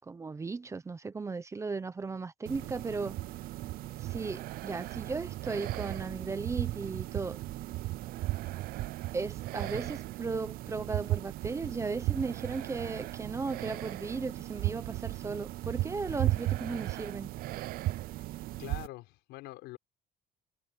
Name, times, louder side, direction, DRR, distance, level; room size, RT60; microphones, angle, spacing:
voice 1, 0.0-3.1 4.0-7.4 9.1-17.3, right 4 dB, 15° right, 0.9 m, -36 dB
sound 1, 2.5-18.9, right 17 dB, 60° right, 0.5 m, -36 dB
voice 2, 18.6-19.8, left 20 dB, 85° left, 5.7 m, -44 dB
cardioid pair, 145°, 17 cm